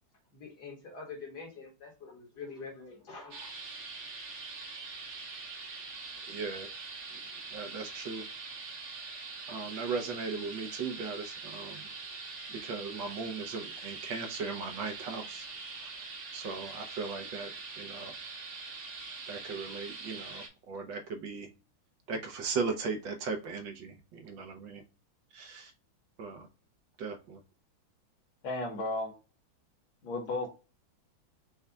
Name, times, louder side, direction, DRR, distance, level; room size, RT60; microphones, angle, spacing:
voice 1, 0.3-3.5, left 4 dB, 55° left, 1.9 m, -45 dB
sound 1, 3.3-20.5, right 4 dB, 55° right, 1.5 m, -43 dB
voice 2, 6.3-6.7 7.5-8.2 9.5-11.9 12.5-15.5 15.8-15.9 16.3-17.5 17.8-18.1 19.3-21.5 22.1-24.8 25.3-25.7 26.2-26.5 27.0-27.4, right 4 dB, 70° right, 1.6 m, -37 dB
voice 3, 28.4-29.1 30.0-30.5, left 2 dB, 80° left, 2.0 m, -33 dB
5.5 x 2.3 x 3.4 m
omnidirectional pair, 2.2 m